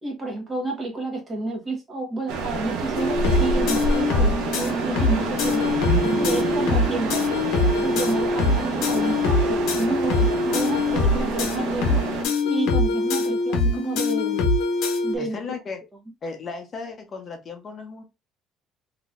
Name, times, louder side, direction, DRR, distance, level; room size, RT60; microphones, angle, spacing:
voice 1, 0.0-5.7 6.2-7.2 7.8-12.0 12.4-14.6 15.0-15.4, right 2 dB, 20° right, 1.3 m, -30 dB
sound 1, 2.3-12.2, right 4 dB, 80° right, 0.9 m, -28 dB
sound 2, 3.0-15.2, left 3 dB, 85° left, 0.9 m, -23 dB
sound 3, 5.3-8.9, right 3 dB, 40° right, 0.8 m, -33 dB
voice 2, 15.2-15.8 16.2-18.0, left 4 dB, 30° left, 0.9 m, -35 dB
3.8 x 2.8 x 2.5 m
cardioid pair, 160°, 0 cm